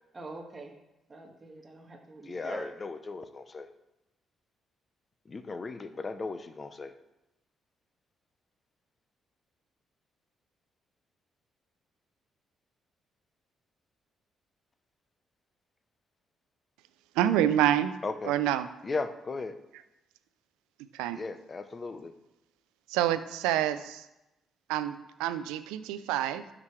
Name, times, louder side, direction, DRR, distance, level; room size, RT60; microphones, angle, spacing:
voice 1, 0.1-0.7 1.1-2.7, right 2 dB, 35° right, 2 dB, 1.7 m, -44 dB
voice 2, 2.2-3.7 5.3-6.9 18.0-18.3 18.8-19.6 21.1-22.1, left 3 dB, 40° left, 10 dB, 0.7 m, -36 dB
voice 3, 17.2-17.9 18.2-18.7 21.0-21.2 22.9-24.0 24.7-26.5, right 11 dB, 85° right, 13 dB, 0.4 m, -27 dB
12.0 x 4.9 x 3.2 m, 0.93 s
hypercardioid pair, 50°, 0 cm